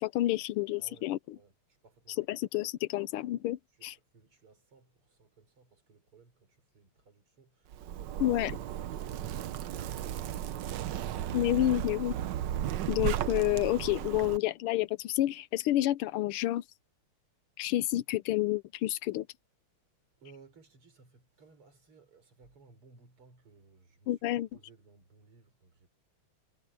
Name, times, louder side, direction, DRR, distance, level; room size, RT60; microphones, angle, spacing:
voice 1, 0.0-1.2 2.2-3.9 8.2-8.5 11.3-12.1 12.9-16.6 17.6-19.3 24.1-24.5, left 15 dB, 85° left, 1.6 m, -29 dB
voice 2, 0.8-2.3 3.7-11.4 20.2-25.9, right 4 dB, 85° right, 5.4 m, -60 dB
Zipper (clothing), 7.7-14.4, right 11 dB, 65° right, 1.3 m, -35 dB
omnidirectional pair, 2.4 m